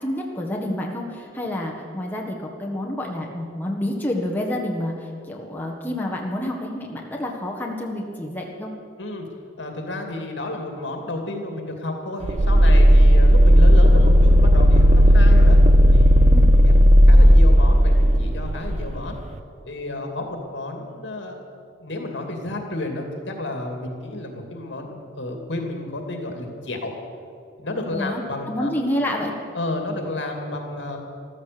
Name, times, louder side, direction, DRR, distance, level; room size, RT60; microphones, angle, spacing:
voice 1, 0.0-8.7 16.3-16.5 27.9-29.3, left 1 dB, 10° left, -1 dB, 1.5 m, -28 dB
voice 2, 9.6-15.6 15.9-16.2 17.0-19.2 19.6-21.4 21.8-26.9 27.6-28.7 29.5-31.0, left 2 dB, 75° left, 3 dB, 2.4 m, -31 dB
sound 1, 12.2-18.9, equal, 35° right, 0.6 m, -13 dB
14.5 x 13.0 x 6.8 m, 2.3 s
head